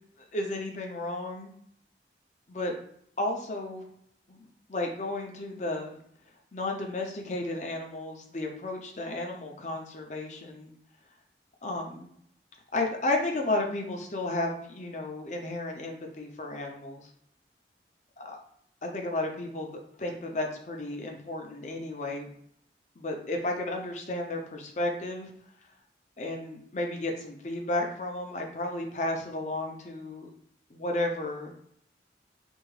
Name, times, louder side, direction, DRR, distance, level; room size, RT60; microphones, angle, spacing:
voice 1, 0.3-1.5 2.5-2.7 3.2-3.9 4.3-6.0 6.5-10.7 11.6-12.1 12.7-17.1 18.2-18.4 18.8-22.3 23.0-25.3 26.2-30.3 30.7-31.5, left 2 dB, 40° left, 2 dB, 0.6 m, -33 dB
3.5 x 2.4 x 3.2 m, 0.67 s
head